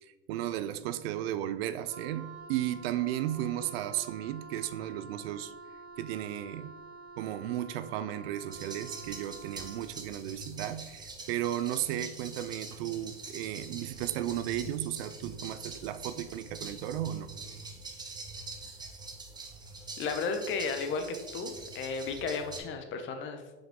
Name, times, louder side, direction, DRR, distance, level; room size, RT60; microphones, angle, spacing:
voice 1, 0.0-5.5 6.0-6.7 7.2-17.3, right 12 dB, 60° right, 13 dB, 0.5 m, -34 dB
Wind instrument woodwind instrument, 1.8-10.0, right 3 dB, 75° right, 1.2 m, -48 dB
sound 1, 8.5-22.6, right 3 dB, 10° right, 0.8 m, -44 dB
voice 2, 20.0-21.0 21.3-23.6, left 5 dB, 35° left, 6 dB, 0.9 m, -34 dB
6.1 x 4.8 x 3.6 m, 1.2 s
hypercardioid pair, 115°, 34 cm